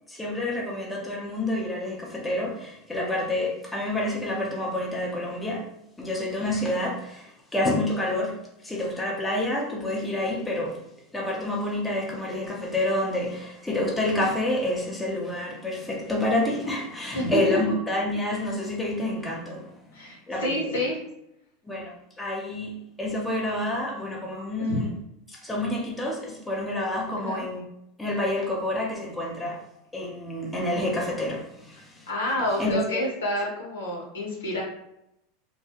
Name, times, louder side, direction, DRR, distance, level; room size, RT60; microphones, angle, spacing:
voice 1, 0.1-5.7 6.0-10.8 11.1-19.7 20.0-20.8 21.6-24.9 25.3-27.7 28.0-29.7 29.9-32.1 32.6-33.1, left 1 dB, 10° left, -3 dB, 0.7 m, -28 dB
voice 2, 17.1-17.6 19.9-21.0 24.7-24.8 27.1-27.4 32.1-34.6, left 1 dB, 90° left, -4 dB, 1.0 m, -28 dB
2.2 x 2.1 x 2.8 m, 0.81 s
hypercardioid pair, 100°, 0 cm